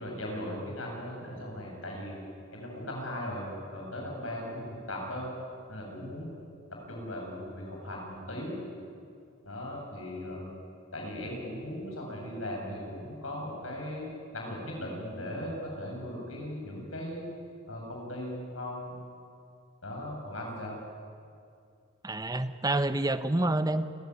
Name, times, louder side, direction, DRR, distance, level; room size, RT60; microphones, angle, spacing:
voice 1, 0.0-2.2 2.5-5.3 5.7-6.3 6.7-8.6 9.4-10.5 10.9-14.1 14.3-17.2 17.7-18.9 19.8-20.7, left 1 dB, 90° left, -1 dB, 7.8 m, -38 dB
voice 2, 22.0-23.8, right 2 dB, 20° right, 11 dB, 0.9 m, -28 dB
28.5 x 15.5 x 9.7 m, 2.5 s
head